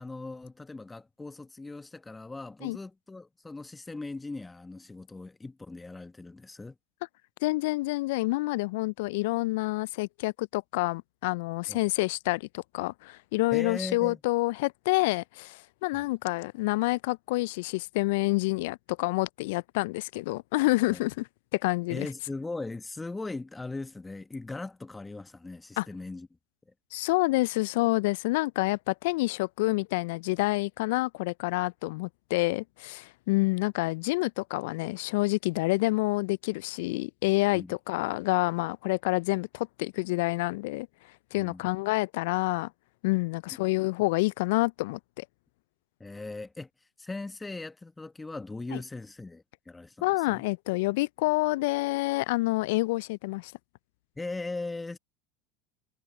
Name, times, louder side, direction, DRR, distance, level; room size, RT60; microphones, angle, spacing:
voice 1, 0.0-6.7 11.7-11.8 13.5-14.2 15.9-16.1 20.9-21.0 21.9-26.3 37.5-37.7 41.3-41.6 46.0-50.4 54.2-55.0, left 3 dB, 15° left, 1.2 m, -39 dB
voice 2, 7.4-21.3 21.5-22.1 25.8-25.9 26.9-40.9 41.3-42.7 43.0-45.2 48.7-48.8 50.0-53.5, left 22 dB, 65° left, 0.4 m, -28 dB
hypercardioid pair, 80°, 0 cm